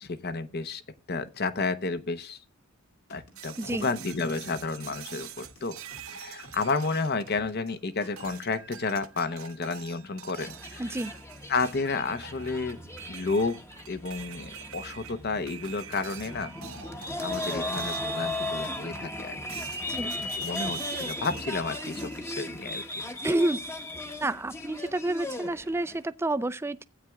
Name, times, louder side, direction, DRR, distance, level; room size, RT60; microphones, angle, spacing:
voice 1, 0.0-0.8 1.1-2.4 3.1-5.8 6.1-11.0 11.5-12.8 13.1-16.5 17.2-19.4 20.0-22.8, left 4 dB, 50° left, 0.8 m, -31 dB
sound 1, 3.1-8.6, left 1 dB, 90° left, 2.5 m, -53 dB
sound 2, 3.4-7.7 8.2-18.2 18.6-19.1 19.5-22.2, right 8 dB, 75° right, 0.9 m, -46 dB
sound 3, 10.3-26.0, left 1 dB, 15° left, 0.9 m, -36 dB
voice 2, 10.8-11.1 19.9-20.2 23.2-23.6 24.2-26.8, right 1 dB, 10° right, 0.4 m, -29 dB
15.5 x 8.9 x 2.3 m
head